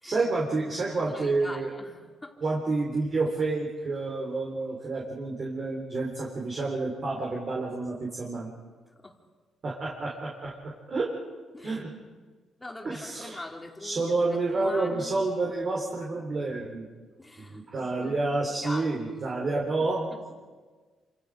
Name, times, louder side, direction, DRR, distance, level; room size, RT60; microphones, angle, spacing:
voice 1, 0.0-1.7 2.4-8.5 9.6-10.5 10.9-11.1 11.6-11.9 12.8-13.4 13.8-16.9 17.4-20.1, right 3 dB, 40° right, -2 dB, 4.1 m, -29 dB
voice 2, 1.0-2.4 9.0-9.1 11.5-11.8 12.6-15.3 16.4-16.6 17.2-18.2 18.6-19.2 19.8-20.2, left 2 dB, 15° left, 2 dB, 2.8 m, -43 dB
28.5 x 26.0 x 5.1 m, 1.4 s
cardioid pair, 130°, 0 cm